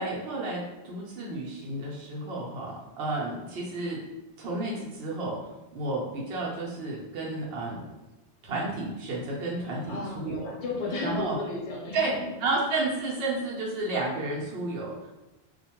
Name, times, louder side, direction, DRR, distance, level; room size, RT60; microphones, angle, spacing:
voice 1, 0.0-4.0 4.4-5.4 5.7-7.9 8.4-10.5 11.0-11.4 11.9-15.1, right 2 dB, 65° right, -4 dB, 0.8 m, -31 dB
voice 2, 9.6-12.2, left 3 dB, 80° left, -4 dB, 1.1 m, -34 dB
2.4 x 2.1 x 2.8 m, 1.0 s
omnidirectional pair, 1.2 m